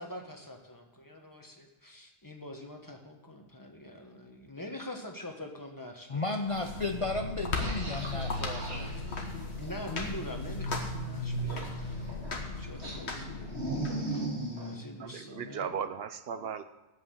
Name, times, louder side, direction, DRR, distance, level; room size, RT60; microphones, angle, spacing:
voice 1, 0.0-6.4 9.6-13.6 14.6-15.8, left 1 dB, 20° left, 3 dB, 1.4 m, -44 dB
voice 2, 6.1-8.9, left 3 dB, 35° left, 4 dB, 0.6 m, -34 dB
sound 1, 6.4-13.9, left 2 dB, 90° left, 1.8 m, -36 dB
sound 2, 7.5-10.0 11.5-12.4 12.8-14.8, right 2 dB, 90° right, 2.9 m, -38 dB
voice 3, 15.0-16.7, right 7 dB, 70° right, 11 dB, 0.9 m, -36 dB
8.5 x 8.3 x 8.2 m, 1.1 s
omnidirectional pair, 1.1 m